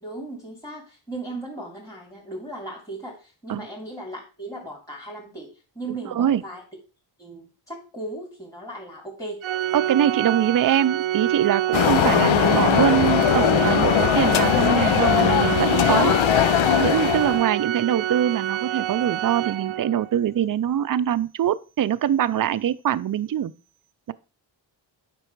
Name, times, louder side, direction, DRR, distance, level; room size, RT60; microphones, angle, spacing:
voice 1, 0.0-6.6 7.2-9.4, right 2 dB, 5° left, 2.7 m, -37 dB
voice 2, 5.9-6.4 9.7-23.5 24.1-24.2, right 10 dB, 45° right, 0.5 m, -23 dB
Organ, 9.4-20.1, right 12 dB, 90° right, 0.7 m, -27 dB
sound 1, 11.7-17.5, left 11 dB, 80° left, 0.6 m, -20 dB
9.9 x 6.1 x 4.6 m
wide cardioid pair, 145°, 47 cm